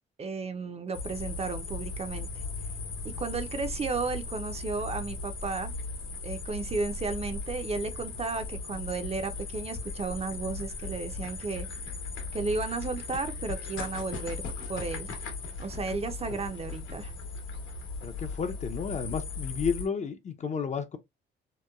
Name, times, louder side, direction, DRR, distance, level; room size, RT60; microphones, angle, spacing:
voice 1, 0.2-2.4 3.0-5.7 6.2-11.7 12.3-14.4 14.7-15.2 15.6-17.1, right 4 dB, 30° right, 0.5 m, -33 dB
sound 1, 0.9-19.9, left 4 dB, 80° left, 0.9 m, -37 dB
voice 2, 18.0-21.0, left 6 dB, 35° left, 0.5 m, -32 dB
2.9 x 2.1 x 2.2 m
cardioid pair, 90°, 20 cm